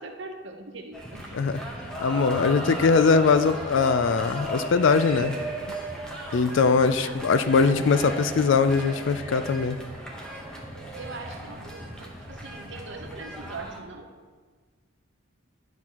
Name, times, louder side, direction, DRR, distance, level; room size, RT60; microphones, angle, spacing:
voice 1, 0.0-1.4 6.9-7.3 11.0-14.1, right 3 dB, 60° right, 4 dB, 0.8 m, -41 dB
sound 1, 0.9-13.8, right 1 dB, 5° left, 0.9 m, -36 dB
voice 2, 2.0-5.4 6.3-9.8, left 4 dB, 60° left, 12 dB, 0.4 m, -21 dB
11.0 x 6.0 x 2.9 m, 1.5 s
head